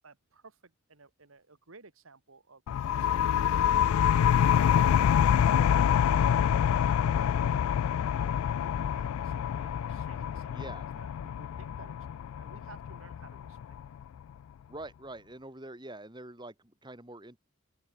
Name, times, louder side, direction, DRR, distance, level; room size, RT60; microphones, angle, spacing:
voice 1, 0.0-2.6 3.0-5.7 6.0-7.7 8.1-10.6 11.0-13.8, right 3 dB, 75° right, 1.8 m, -55 dB
sound 1, 2.7-14.0, left 9 dB, 85° left, 0.3 m, -26 dB
voice 2, 10.5-10.9 14.7-17.4, right 1 dB, 20° right, 3.0 m, -45 dB
open air
head